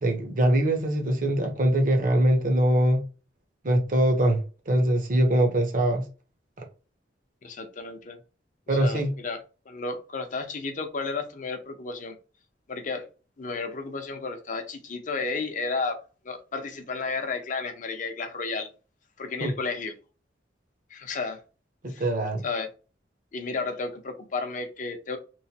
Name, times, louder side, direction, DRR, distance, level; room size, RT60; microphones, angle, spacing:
voice 1, 0.0-3.0 3.6-4.4 4.7-6.0 8.7-9.1 19.4-19.5 21.8-22.4, right 1 dB, 50° right, 0.7 m, -22 dB
voice 2, 7.4-8.2 8.7-9.4 9.7-12.2 12.7-13.1 13.4-16.0 16.2-18.7 19.2-19.9 20.9-21.4 21.9-22.0 22.4-22.7 23.3-25.2, left 4 dB, 45° left, 0.5 m, -32 dB
3.0 x 2.1 x 2.7 m
head